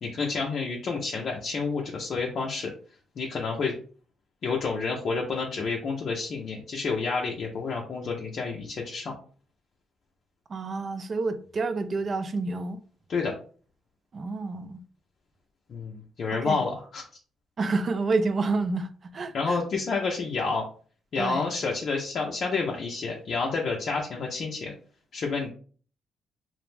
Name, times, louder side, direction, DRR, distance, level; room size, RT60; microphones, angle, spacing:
voice 1, 0.0-2.7 3.2-3.7 4.4-9.1 13.1-13.3 15.7-17.0 19.3-20.6 21.1-24.7 25.1-25.5, left 4 dB, 55° left, 0.5 m, -29 dB
voice 2, 10.5-12.8 14.1-14.8 16.3-16.6 17.6-19.6 21.2-21.4, right 3 dB, 45° right, 0.3 m, -29 dB
2.5 x 2.0 x 3.1 m
cardioid pair, 90°, 0 cm